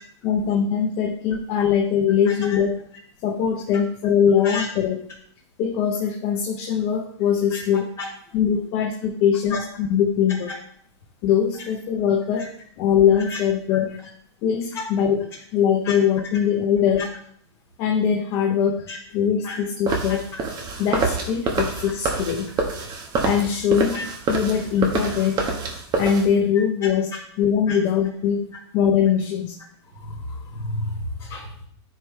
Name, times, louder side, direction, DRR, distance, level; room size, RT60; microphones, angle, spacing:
voice 1, 0.2-2.7 3.2-5.0 5.6-7.9 8.3-10.5 11.2-12.5 12.8-14.0 14.4-15.2 15.5-17.1 17.8-18.9 19.1-20.2 20.8-22.5 23.2-24.0 24.3-25.6 26.0-27.1 27.4-28.5 28.7-29.6, left 8 dB, 40° left, 3 dB, 0.8 m, -21 dB
voice 2, 2.2-2.6 4.4-4.7 7.5-7.6 8.0-8.6 9.5-9.6 11.5-11.6 12.4-12.5 13.2-13.4 13.7-13.8 14.7-14.8 15.8-16.0 17.0-17.1 18.9-19.0 19.4-19.6 20.3-20.4 23.9-24.0 27.7-27.8 29.8-31.7, left 2 dB, 15° left, -10 dB, 3.4 m, -32 dB
sound 1, 19.9-26.3, right 4 dB, 30° right, 1.3 m, -26 dB
10.0 x 4.7 x 3.2 m, 0.63 s
hypercardioid pair, 135°, 15 cm